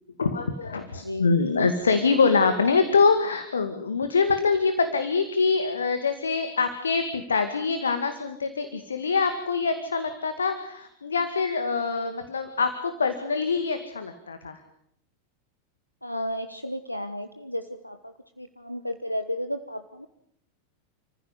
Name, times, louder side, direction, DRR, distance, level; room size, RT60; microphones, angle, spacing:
voice 1, 0.2-14.6, left 4 dB, 70° left, 9 dB, 2.1 m, -24 dB
voice 2, 1.0-1.3 16.0-20.1, equal, 90° left, 9 dB, 1.2 m, -33 dB
29.5 x 15.0 x 9.7 m, 0.71 s
figure-of-eight pair, 90°, 0 cm